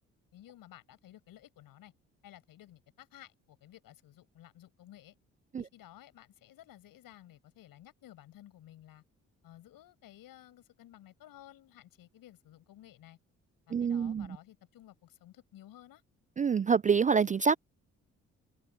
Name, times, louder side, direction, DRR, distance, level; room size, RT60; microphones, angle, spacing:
voice 1, 0.3-1.9 2.2-5.2 5.6-9.0 9.4-13.2 13.7-16.0, left 13 dB, 70° left, 7.3 m, -55 dB
voice 2, 13.7-14.3 16.4-17.6, right 6 dB, 20° right, 0.4 m, -26 dB
hypercardioid pair, 45°, 36 cm